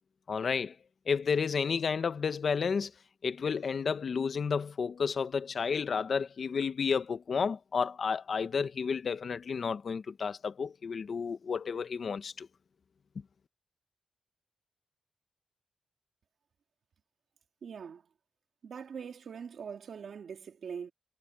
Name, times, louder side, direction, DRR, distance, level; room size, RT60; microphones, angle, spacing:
voice 1, 0.3-0.7 1.1-2.9 3.2-12.5, left 6 dB, 50° left, 1.0 m, -31 dB
voice 2, 17.6-18.0 18.6-20.9, right 6 dB, 65° right, 2.9 m, -42 dB
wide cardioid pair, 140°, 0 cm